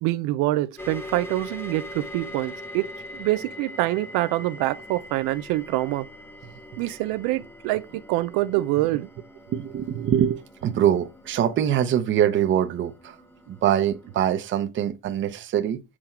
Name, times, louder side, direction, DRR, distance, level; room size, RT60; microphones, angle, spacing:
voice 1, 0.0-2.9 3.1-6.1 6.8-9.1, right 17 dB, 90° right, 0.5 m, -25 dB
sound 1, 0.8-14.2, left 1 dB, 5° left, 0.9 m, -42 dB
voice 2, 9.5-13.2 13.5-15.8, right 10 dB, 40° right, 0.8 m, -24 dB
7.5 x 3.7 x 4.4 m
cardioid pair, 155°, 30 cm